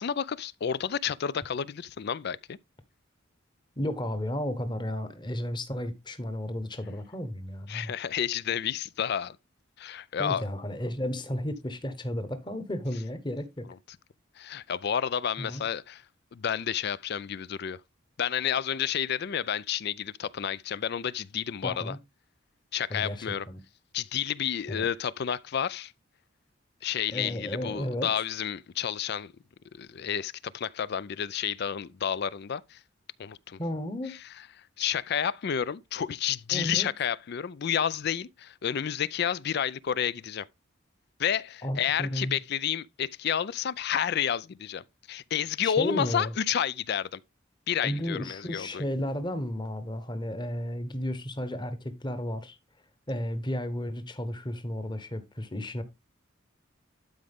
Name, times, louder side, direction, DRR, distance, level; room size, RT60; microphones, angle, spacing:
voice 1, 0.0-2.6 7.7-9.4 9.8-10.5 14.4-16.0 16.3-17.8 18.2-22.0 22.7-23.5 23.9-25.9 26.8-29.3 29.7-32.8 33.2-33.6 34.1-34.2 34.8-40.5 41.2-47.2 47.7-48.8, left 8 dB, 55° left, 0.4 m, -30 dB
voice 2, 3.8-7.9 10.2-13.7 15.4-15.6 21.6-22.0 22.9-23.6 24.7-24.9 27.1-28.1 33.6-34.1 36.5-36.9 41.6-42.4 45.6-46.3 47.8-52.6 53.1-55.8, left 1 dB, 25° left, 1.1 m, -33 dB
12.0 x 5.0 x 3.5 m
head